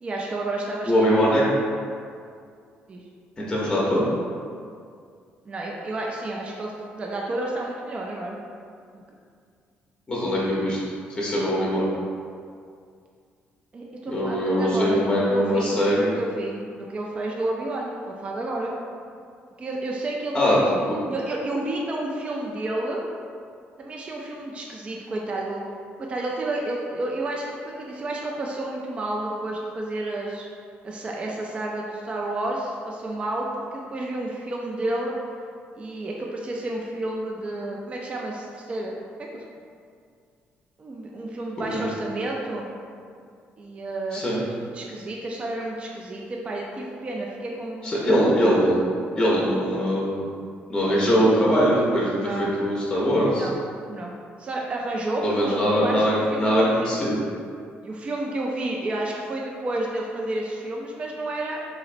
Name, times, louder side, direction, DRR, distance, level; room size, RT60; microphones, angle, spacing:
voice 1, 0.0-1.6 2.9-3.0 5.5-8.4 8.9-9.0 13.7-18.7 19.6-20.7 21.1-23.0 23.8-25.6 26.0-30.5 30.8-35.1 35.7-39.5 40.8-42.7 43.6-48.0 52.1-52.5 53.3-53.6 53.9-54.1 54.4-56.9 57.8-61.6, right 2 dB, 30° right, -1 dB, 0.3 m, -31 dB
voice 2, 0.9-1.4 3.4-4.1 10.1-10.8 11.1-11.9 14.1-16.1 20.3-20.6 20.9-21.0 41.7-41.9 44.1-44.4 47.8-48.8 49.2-50.3 50.7-52.1 52.4-53.5 55.2-57.2, equal, 20° left, -6 dB, 0.7 m, -21 dB
3.9 x 3.0 x 2.5 m, 2.2 s
cardioid pair, 130°, 4 cm